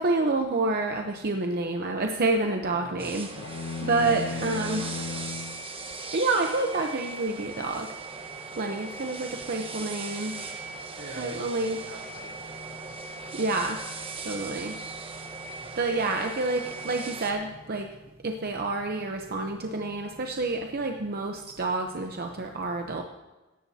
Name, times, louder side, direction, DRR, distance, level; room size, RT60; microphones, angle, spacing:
voice 1, 0.0-4.8 6.1-7.9 8.6-10.4 11.2-11.8 13.3-13.8 14.2-14.8 15.8-17.9 18.2-23.0, right 3 dB, 50° right, 3 dB, 0.8 m, -28 dB
voice 2, 2.7-3.1 3.9-5.4 10.9-12.9 15.6-16.1, right 1 dB, 75° right, -5 dB, 3.0 m, -44 dB
sound 1, 3.0-17.3, right 4 dB, 25° right, 1.2 m, -39 dB
sound 2, 3.4-5.6, left 4 dB, 60° left, 0.5 m, -35 dB
17.0 x 14.0 x 2.8 m, 1.1 s
head